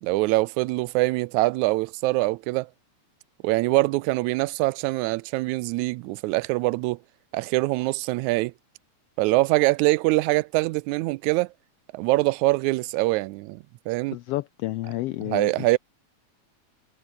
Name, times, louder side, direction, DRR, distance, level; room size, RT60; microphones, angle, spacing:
voice 1, 0.0-2.7 3.4-7.0 7.3-8.5 9.2-11.5 11.9-14.2 15.2-15.8, right 21 dB, 85° right, 1.9 m, -24 dB
voice 2, 14.1-15.8, left 17 dB, 90° left, 1.3 m, -31 dB
omnidirectional pair, 3.3 m